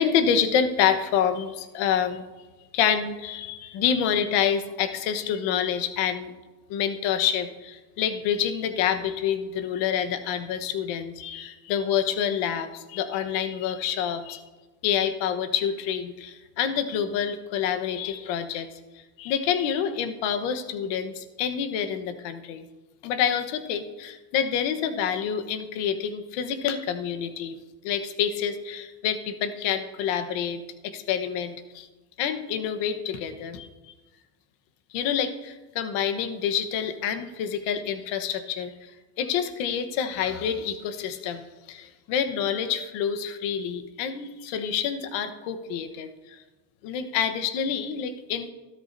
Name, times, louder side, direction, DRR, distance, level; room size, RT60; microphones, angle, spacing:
voice 1, 0.0-2.2 2.7-6.3 6.7-14.4 14.8-18.7 19.2-22.6 23.0-27.6 27.8-31.9 32.2-33.7 34.9-38.9 39.2-41.4 41.7-46.4 46.8-48.5, left 8 dB, 65° left, 8 dB, 1.2 m, -27 dB
14.0 x 12.5 x 2.7 m, 1.2 s
supercardioid pair, 125°, 46 cm